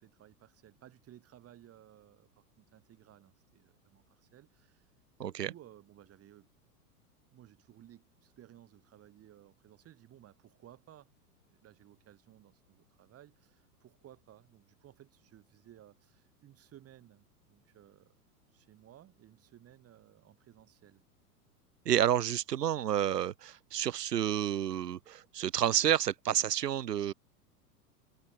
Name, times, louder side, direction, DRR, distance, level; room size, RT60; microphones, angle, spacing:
voice 1, 0.0-4.9 5.2-6.5 7.3-11.1 11.5-18.1 18.5-21.0, right 12 dB, 30° right, 7.5 m, -58 dB
voice 2, 5.2-5.5 21.9-27.1, right 10 dB, 80° right, 0.6 m, -30 dB
figure-of-eight pair, 95°, 47 cm